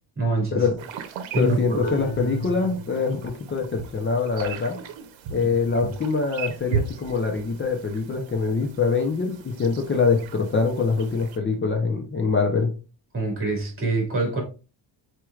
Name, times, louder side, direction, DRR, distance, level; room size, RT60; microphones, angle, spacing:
voice 1, 0.2-0.6 1.3-2.0 13.1-14.4, right 2 dB, 30° right, 2.3 m, -25 dB
sound 1, 0.8-11.4, right 7 dB, 80° right, 0.8 m, -37 dB
voice 2, 1.4-4.8 5.3-12.7, left 4 dB, 25° left, 0.7 m, -24 dB
sound 2, 1.8-3.3, equal, 50° left, 1.1 m, -34 dB
4.7 x 4.5 x 2.3 m
cardioid pair, 160°, 45 cm